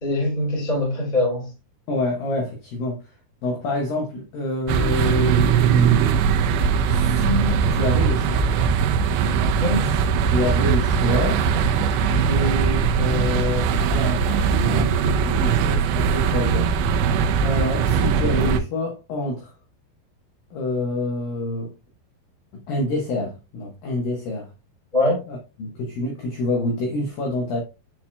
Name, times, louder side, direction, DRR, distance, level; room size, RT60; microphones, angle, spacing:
voice 1, 0.0-1.5 9.6-9.9 24.9-25.2, left 1 dB, 15° left, 1.9 m, -22 dB
voice 2, 1.9-3.1 3.4-6.1 6.9-8.5 9.8-11.5 12.1-16.7 17.4-19.5 20.5-21.7 22.5-24.5 25.3-27.6, left 2 dB, 80° left, 2.0 m, -27 dB
sound 1, 4.7-18.6, right 6 dB, 90° right, 2.5 m, -20 dB
10.5 x 4.4 x 2.2 m
omnidirectional pair, 5.9 m